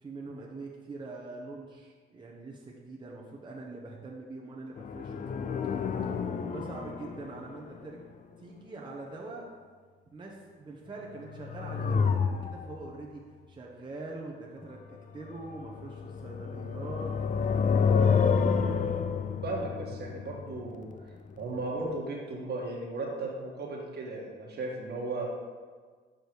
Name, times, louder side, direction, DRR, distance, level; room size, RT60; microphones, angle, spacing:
voice 1, 0.0-5.7 6.1-8.0 8.4-9.5 10.1-13.2 13.5-18.6, right 2 dB, 25° right, -3 dB, 1.1 m, -44 dB
sound 1, 4.8-7.9 11.2-12.9 15.3-21.3 21.6-21.7, left 6 dB, 40° left, 0.5 m, -29 dB
voice 2, 19.4-20.9 21.4-25.3, right 2 dB, 55° right, -2 dB, 1.7 m, -35 dB
6.8 x 5.1 x 4.7 m, 1.5 s
cardioid pair, 90°, 20 cm